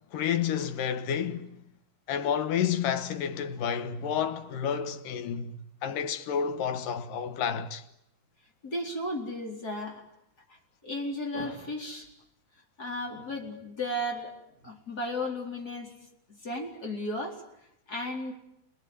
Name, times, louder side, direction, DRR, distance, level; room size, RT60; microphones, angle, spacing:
voice 1, 0.1-1.6 2.1-5.5 5.8-7.8, left 8 dB, 85° left, 2.9 m, -30 dB
voice 2, 8.6-10.0 10.5-12.1 12.8-14.3 14.6-15.9 16.3-17.4 17.9-18.3, left 1 dB, 25° left, 4.6 m, -34 dB
30.0 x 20.0 x 9.8 m
omnidirectional pair, 3.7 m